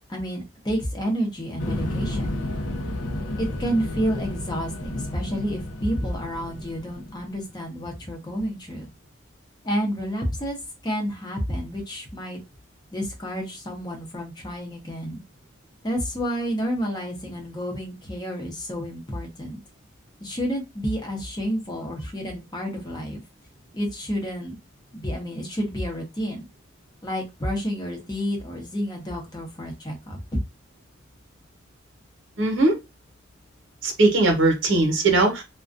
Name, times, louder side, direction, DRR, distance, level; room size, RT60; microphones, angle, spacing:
voice 1, 0.1-2.3 3.4-8.9 9.6-10.6 10.8-12.4 12.9-15.2 15.8-19.6 20.2-23.2 23.7-24.5 24.9-26.4 27.0-30.4, equal, 20° left, 1 dB, 0.7 m, -30 dB
sound 1, 1.6-7.4, left 1 dB, 85° left, 0.5 m, -31 dB
voice 2, 32.4-32.8 33.8-35.4, right 2 dB, 75° right, 2 dB, 0.9 m, -19 dB
2.4 x 2.2 x 2.5 m, 0.24 s
head